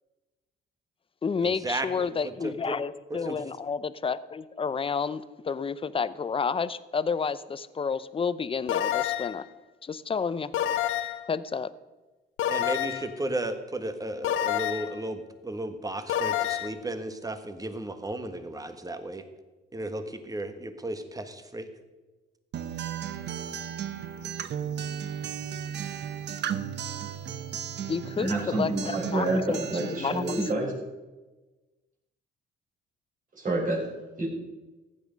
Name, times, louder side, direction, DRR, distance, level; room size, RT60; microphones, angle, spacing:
voice 1, 1.2-9.5 9.8-10.5 11.3-11.7 27.9-30.4, left 5 dB, 25° left, 16 dB, 0.6 m, -30 dB
voice 2, 2.4-2.8 3.1-3.4 12.5-19.2 19.7-21.7, right 1 dB, 20° right, 9 dB, 1.5 m, -34 dB
sound 1, 8.7-9.4 10.5-11.3 12.4-13.1 14.2-15.0 16.1-16.7, left 11 dB, 85° left, 0.7 m, -28 dB
Acoustic guitar, 22.5-30.5, right 9 dB, 60° right, 0.8 m, -35 dB
voice 3, 28.1-30.7 33.4-33.8 34.2-34.3, right 2 dB, 40° right, -3 dB, 5.0 m, -28 dB
14.5 x 9.7 x 5.2 m, 1.2 s
cardioid pair, 90°, 20 cm